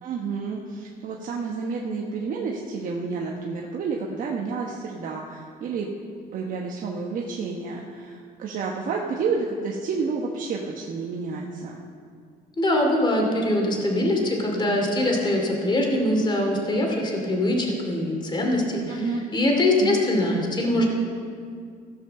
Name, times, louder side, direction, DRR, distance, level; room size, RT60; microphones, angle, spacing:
voice 1, 0.0-5.9 6.3-11.8 18.9-19.2 19.8-20.0, right 4 dB, 55° right, -1 dB, 1.1 m, -30 dB
voice 2, 12.6-19.1 19.3-20.9, left 1 dB, 25° left, 0 dB, 2.5 m, -23 dB
15.5 x 5.6 x 6.8 m, 2.2 s
cardioid pair, 110°, 17 cm